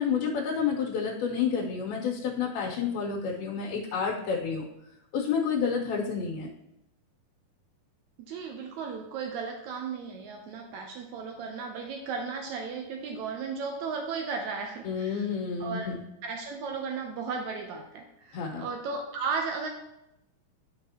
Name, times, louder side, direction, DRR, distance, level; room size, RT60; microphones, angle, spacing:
voice 1, 0.0-4.7 5.1-6.5 14.8-16.0 18.3-18.7, left 6 dB, 90° left, -4 dB, 2.9 m, -29 dB
voice 2, 8.3-15.3 15.6-15.9 16.2-19.7, right 5 dB, 90° right, 3 dB, 1.6 m, -35 dB
10.5 x 5.8 x 2.9 m, 0.86 s
omnidirectional pair, 4.2 m